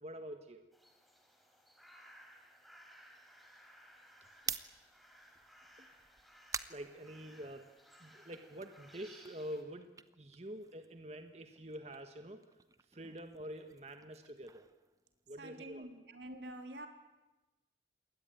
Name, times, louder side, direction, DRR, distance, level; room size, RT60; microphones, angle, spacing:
voice 1, 0.0-0.7 4.5-4.6 6.7-7.7 8.0-9.9 10.2-12.4 12.9-14.7 15.3-15.9, equal, 35° right, 6 dB, 1.5 m, -47 dB
sound 1, 0.7-9.6, equal, ahead, 3.9 m, -60 dB
sound 2, 4.3-7.8 8.2-11.1 11.4-15.6, right 6 dB, 20° right, 0.8 m, -48 dB
voice 2, 15.4-16.9, right 1 dB, 80° right, 6 dB, 3.4 m, -47 dB
27.5 x 21.5 x 9.2 m, 1.1 s
head